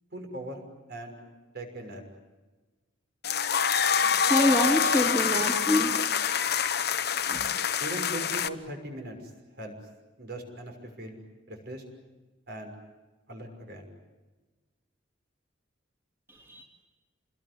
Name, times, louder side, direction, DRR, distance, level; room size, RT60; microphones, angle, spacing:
voice 1, 0.1-0.6 0.9-1.2 1.5-2.0 7.8-9.2 9.6-9.7 10.2-11.2 11.5-11.8 12.5-12.7 13.3-13.9, right 1 dB, 55° right, 4 dB, 6.1 m, -39 dB
sound 1, 3.2-8.5, left 7 dB, 55° left, 1.1 m, -26 dB
voice 2, 4.2-6.1 7.3-7.5 16.5-16.6, left 1 dB, 10° right, 0 dB, 3.0 m, -26 dB
28.5 x 21.0 x 9.8 m, 1.2 s
head